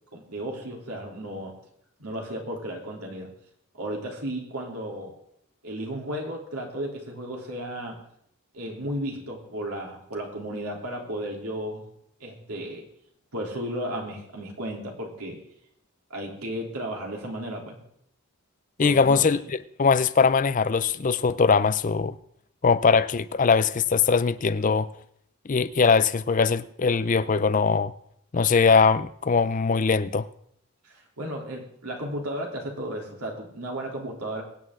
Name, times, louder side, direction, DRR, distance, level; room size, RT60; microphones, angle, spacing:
voice 1, 0.1-1.5 2.0-3.3 3.7-5.1 5.6-8.0 8.5-11.8 12.2-12.8 13.3-15.4 16.1-17.8 18.8-19.2 30.8-34.4, right 1 dB, 90° right, 3.3 m, -34 dB
voice 2, 18.8-22.2 22.6-24.9 25.5-27.9 28.3-30.3, left 5 dB, 35° left, 0.4 m, -21 dB
23.5 x 8.9 x 3.7 m
head